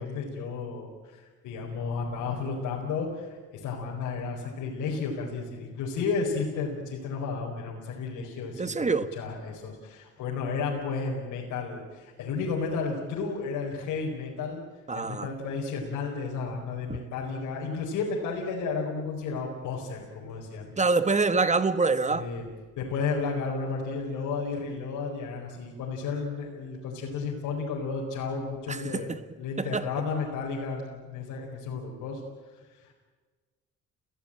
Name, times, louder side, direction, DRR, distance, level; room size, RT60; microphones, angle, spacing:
voice 1, 0.0-14.6 14.9-20.7 22.1-22.5 22.7-32.2 32.8-32.9, left 4 dB, 85° left, -2 dB, 4.7 m, -33 dB
voice 2, 8.6-9.1 14.9-15.3 20.8-22.3 28.7-29.2 29.6-29.8, right 4 dB, 25° right, 12 dB, 1.4 m, -25 dB
30.0 x 17.0 x 9.0 m, 1.4 s
cardioid pair, 90°, 30 cm